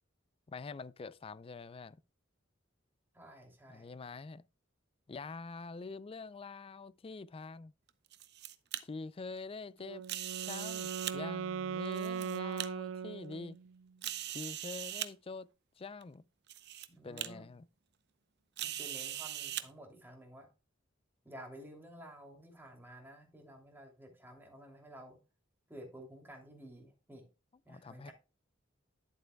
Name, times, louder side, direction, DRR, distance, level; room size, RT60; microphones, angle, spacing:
voice 1, 0.5-2.0 3.7-4.4 5.1-7.7 8.8-10.0 10.4-13.6 14.3-15.5 15.8-16.2 17.0-17.7 27.7-28.1, left 4 dB, 30° left, 0.4 m, -45 dB
voice 2, 3.1-3.9 16.9-17.5 18.6-20.5 21.2-25.2 25.7-27.3 27.6-28.1, equal, 10° right, 2.8 m, -52 dB
sound 1, 7.9-8.8 10.0-11.2 11.9-12.7 13.3-13.4 14.0-15.1 16.0-16.1 16.5-16.9 17.2-17.3 18.6-19.6, right 12 dB, 55° right, 0.7 m, -40 dB
Wind instrument woodwind instrument, 9.8-13.8, right 7 dB, 75° right, 0.4 m, -39 dB
11.0 x 7.8 x 2.2 m
head